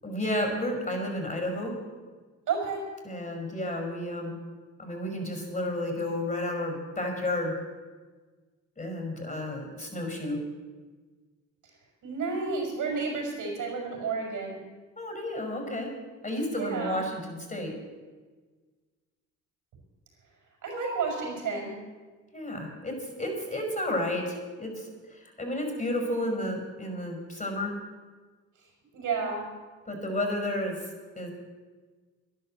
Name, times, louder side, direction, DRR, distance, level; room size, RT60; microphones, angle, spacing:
voice 1, 0.0-1.7 3.0-4.4 4.8-7.5 8.8-10.4 15.0-15.9 16.2-17.7 22.3-27.7 29.9-30.9 31.1-31.3, left 1 dB, 25° left, 3 dB, 5.8 m, -32 dB
voice 2, 2.5-2.8 12.0-14.6 16.6-17.0 20.6-21.7 28.9-29.4, right 4 dB, 70° right, 1 dB, 5.5 m, -31 dB
11.5 x 11.0 x 7.8 m, 1.4 s
supercardioid pair, 60°, 32 cm